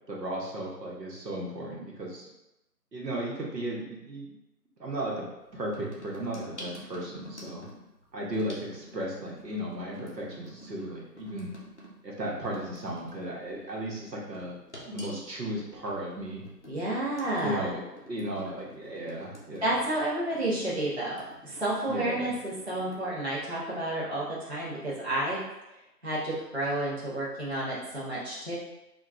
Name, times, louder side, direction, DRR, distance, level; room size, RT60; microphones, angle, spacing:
voice 1, 0.1-2.3 2.9-4.3 4.8-5.3 5.5-7.6 8.1-11.5 12.0-14.6 14.9-16.4 17.4-19.6 21.9-22.3, right 1 dB, 80° right, -3 dB, 0.9 m, -35 dB
sound 1, 5.4-23.1, equal, 45° left, 0.5 m, -49 dB
voice 2, 16.7-17.7 19.6-25.4 26.0-28.6, right 1 dB, 40° right, -9 dB, 0.6 m, -31 dB
2.9 x 2.3 x 2.3 m, 0.93 s
figure-of-eight pair, 170°, 49 cm